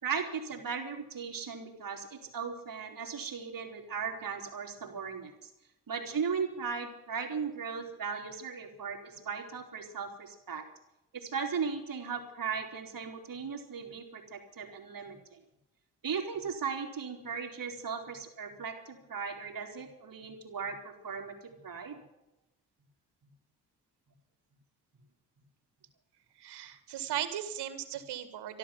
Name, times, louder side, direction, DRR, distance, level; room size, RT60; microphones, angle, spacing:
voice 1, 0.0-5.5 5.9-10.6 11.1-15.4 16.0-22.0, right 6 dB, 55° right, 3 dB, 3.7 m, -37 dB
voice 2, 26.4-28.6, right 11 dB, 85° right, 10 dB, 1.9 m, -37 dB
13.0 x 12.5 x 8.4 m, 0.90 s
supercardioid pair, 55°, 39 cm